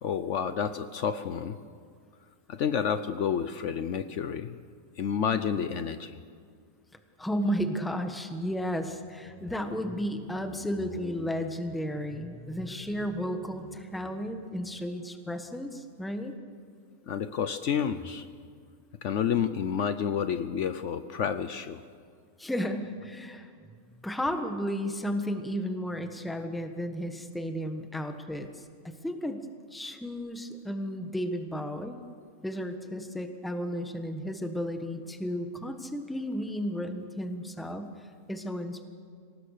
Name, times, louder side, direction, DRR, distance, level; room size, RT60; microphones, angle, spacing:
voice 1, 0.0-1.6 2.5-4.6 5.0-6.2 17.1-18.3 19.0-21.8, left 7 dB, 65° left, 11 dB, 1.0 m, -30 dB
voice 2, 7.2-16.3 22.4-23.7 24.0-29.4 29.7-32.0 32.4-38.8, equal, ahead, 6 dB, 1.3 m, -33 dB
26.0 x 18.0 x 6.6 m, 2.1 s
omnidirectional pair, 1.4 m